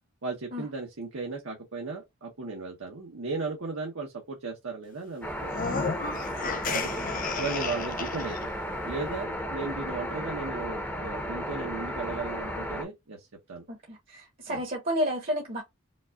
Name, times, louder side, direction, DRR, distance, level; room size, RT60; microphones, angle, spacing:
voice 1, 0.2-5.8 6.7-6.9 7.4-8.4 8.8-13.6 14.5-14.6, right 4 dB, 60° right, 0.9 m, -36 dB
sound 1, 5.2-12.8, equal, 10° left, 0.8 m, -34 dB
sound 2, 5.5-8.4, left 5 dB, 40° left, 0.5 m, -33 dB
voice 2, 13.7-15.6, equal, 40° right, 1.0 m, -31 dB
5.1 x 2.4 x 2.3 m
head